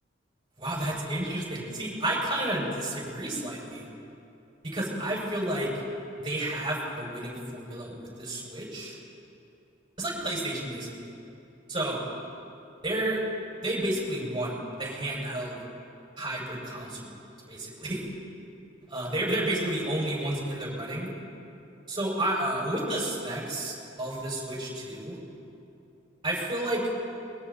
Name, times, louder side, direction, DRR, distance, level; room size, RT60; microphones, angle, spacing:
voice 1, 0.6-3.8 4.6-5.7 6.2-9.0 10.0-10.9 11.7-12.0 12.8-13.2 13.6-15.6 16.2-17.2 17.5-18.0 18.9-21.1 21.9-25.2 26.2-26.9, right 1 dB, 25° right, -4 dB, 6.3 m, -31 dB
28.5 x 22.5 x 4.3 m, 2.7 s
head